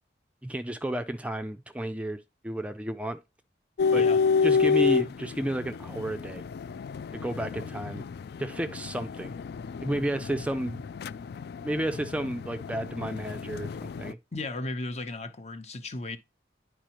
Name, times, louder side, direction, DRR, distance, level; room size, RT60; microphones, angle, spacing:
voice 1, 0.4-3.2 3.9-4.1 4.4-6.4 7.1-8.0 8.4-9.3 9.8-10.8 11.6-14.2, right 1 dB, 5° right, 0.4 m, -32 dB
sound 1, 3.8-14.1, left 5 dB, 60° left, 0.3 m, -29 dB
voice 2, 14.3-16.2, left 2 dB, 40° left, 0.9 m, -35 dB
10.5 x 4.7 x 3.0 m
head